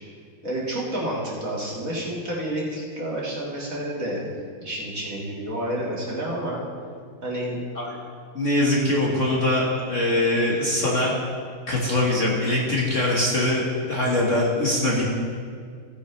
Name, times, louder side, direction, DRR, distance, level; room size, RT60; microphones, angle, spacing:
voice 1, 0.4-4.2 4.6-6.6 7.2-7.6, right 1 dB, 40° right, -5 dB, 2.3 m, -29 dB
voice 2, 8.3-11.1 11.7-15.1, left 1 dB, 40° left, -5 dB, 1.6 m, -22 dB
16.0 x 9.4 x 3.2 m, 2.1 s
omnidirectional pair, 2.3 m